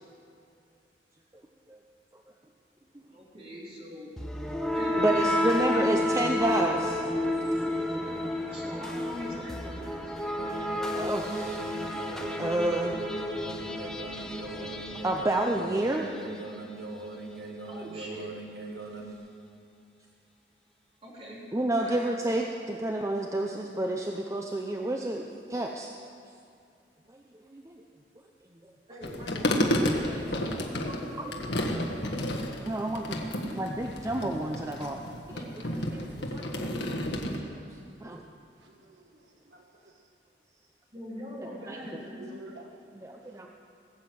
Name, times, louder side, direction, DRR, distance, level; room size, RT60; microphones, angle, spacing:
voice 1, 3.1-4.1 4.7-6.2 8.5-10.1 17.7-18.3 21.0-21.4 21.7-22.0 28.9-29.8 30.2-32.2 40.9-42.3, equal, 30° right, -5 dB, 3.7 m, -42 dB
sound 1, 4.2-16.1, left 1 dB, 5° left, 1.0 m, -31 dB
voice 2, 5.0-7.0 7.4-7.5 10.5-11.6 11.9-12.1 12.4-13.0 14.6-14.7 15.0-16.1 21.5-25.9 27.5-27.8 30.1-30.5 32.7-33.2 33.5-35.0 35.3-37.3 38.0-38.2 41.7-41.8 43.0-43.5, right 1 dB, 15° right, 2 dB, 0.6 m, -30 dB
sound 2, 10.4-19.1, right 2 dB, 60° right, 1.4 m, -40 dB
sound 3, 29.0-37.4, left 1 dB, 75° left, 1.5 m, -31 dB
voice 3, 38.6-40.0 41.5-41.7 42.2-42.9 43.2-43.6, right 2 dB, 85° right, 2 dB, 1.4 m, -51 dB
19.0 x 8.0 x 7.8 m, 2.4 s
head